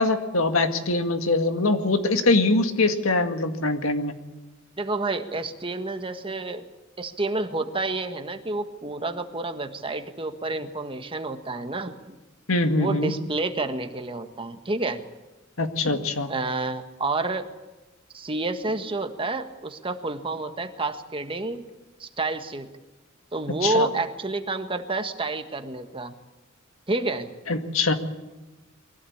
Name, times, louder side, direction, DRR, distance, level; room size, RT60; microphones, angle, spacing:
voice 1, 0.0-4.1 12.5-13.1 15.6-16.3 23.6-23.9 27.5-27.9, left 2 dB, 75° left, 7 dB, 2.0 m, -23 dB
voice 2, 4.8-6.6 7.0-12.2 12.7-15.0 16.3-17.5 18.1-21.6 22.0-22.7 23.3-26.1 26.9-27.3, right 2 dB, 25° right, 7 dB, 1.6 m, -29 dB
23.0 x 16.0 x 8.8 m, 1.1 s
head